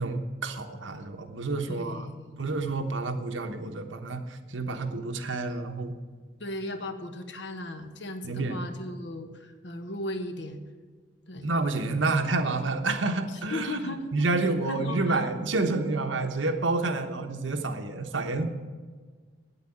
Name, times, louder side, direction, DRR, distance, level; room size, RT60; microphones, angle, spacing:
voice 1, 0.0-2.1 2.4-4.2 4.5-5.9 8.2-8.7 11.4-18.4, right 3 dB, 90° right, 6 dB, 1.2 m, -29 dB
voice 2, 1.7-2.4 6.4-10.6 11.3-11.5 13.3-14.1 14.7-15.3, left 1 dB, 70° left, 7 dB, 1.2 m, -36 dB
9.1 x 8.3 x 8.7 m, 1.5 s
head